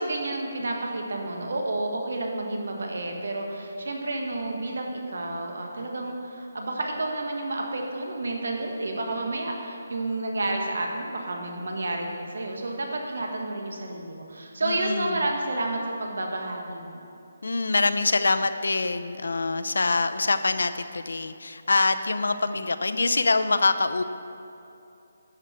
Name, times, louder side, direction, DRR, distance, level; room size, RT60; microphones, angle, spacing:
voice 1, 0.0-17.1, right 2 dB, 65° right, 1 dB, 1.6 m, -30 dB
voice 2, 14.6-15.3 17.4-24.0, left 3 dB, 85° left, 10 dB, 0.6 m, -25 dB
11.5 x 8.1 x 4.4 m, 2.8 s
hypercardioid pair, 180°, 0 cm